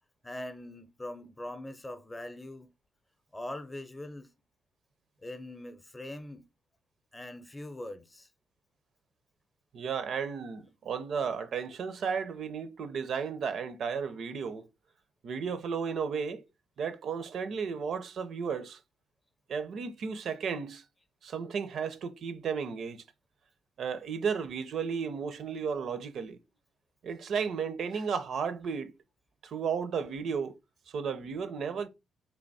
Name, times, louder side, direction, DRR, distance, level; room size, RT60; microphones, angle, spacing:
voice 1, 0.2-2.7 3.3-4.3 5.2-6.5 7.1-8.3, left 1 dB, 15° left, 0.6 m, -42 dB
voice 2, 9.7-14.7 15.2-16.4 16.8-18.8 19.5-20.8 21.2-23.0 23.8-26.4 27.0-28.9 29.4-30.6 30.9-31.9, right 6 dB, 60° right, 0.5 m, -34 dB
3.4 x 2.9 x 4.0 m
cardioid pair, 90°, 0 cm